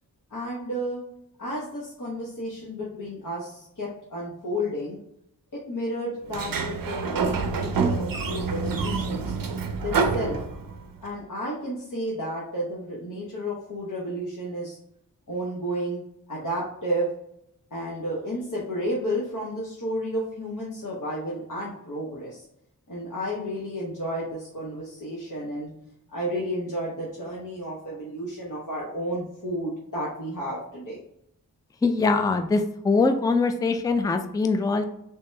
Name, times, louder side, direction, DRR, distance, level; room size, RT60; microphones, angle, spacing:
voice 1, 0.3-1.0 1.4-5.0 5.5-9.3 9.8-10.4 11.0-14.8 15.3-16.0 16.3-17.1 17.7-22.5 22.9-25.7 26.1-31.0, equal, 60° left, -6 dB, 1.0 m, -32 dB
Sliding door, 6.3-11.0, right 5 dB, 75° right, 0.5 m, -27 dB
voice 2, 31.8-34.8, left 3 dB, 10° left, 7 dB, 0.3 m, -23 dB
3.4 x 2.8 x 3.2 m, 0.76 s
wide cardioid pair, 55°, 34 cm